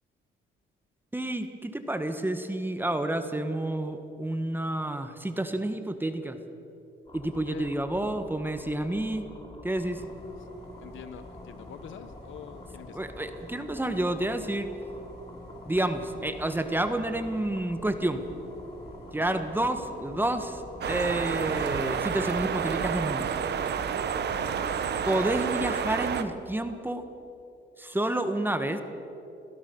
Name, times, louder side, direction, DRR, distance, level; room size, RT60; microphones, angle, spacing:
voice 1, 1.1-6.4 7.1-9.3 9.6-10.0 12.9-14.7 15.7-18.2 19.1-23.3 25.1-27.0 27.8-28.8, right 1 dB, 10° right, 8 dB, 1.6 m, -29 dB
sound 1, 7.1-25.4, left 2 dB, 25° left, 3.3 m, -47 dB
sound 2, 9.9-24.6, left 1 dB, 55° left, 5.8 m, -50 dB
voice 2, 10.8-13.1 19.1-19.4 24.4-24.6, left 8 dB, 75° left, 11 dB, 1.4 m, -45 dB
sound 3, 20.8-26.2, right 7 dB, 55° right, 1.3 m, -29 dB
24.0 x 16.5 x 7.2 m, 2.8 s
cardioid pair, 90°, 20 cm